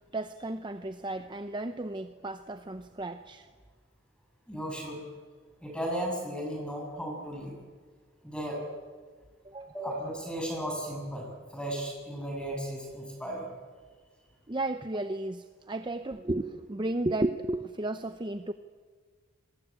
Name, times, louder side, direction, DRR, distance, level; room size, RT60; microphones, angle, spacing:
voice 1, 0.1-3.5 9.4-9.7 14.5-18.5, right 2 dB, 20° right, 9 dB, 0.7 m, -33 dB
voice 2, 4.5-5.0 5.6-7.5 8.2-8.6 9.7-13.5, right 1 dB, 5° left, 0 dB, 7.5 m, -35 dB
27.0 x 22.5 x 8.8 m, 1.5 s
head